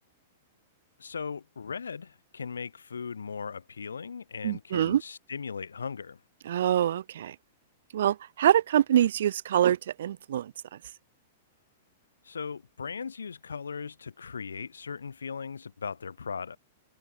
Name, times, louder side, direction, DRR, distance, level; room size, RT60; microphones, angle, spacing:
voice 1, 1.0-6.2 12.2-16.6, left 6 dB, 75° left, 5.1 m, -38 dB
voice 2, 4.4-5.0 6.4-7.3 7.9-10.5, right 11 dB, 65° right, 1.6 m, -25 dB
figure-of-eight pair, 105°, 0 cm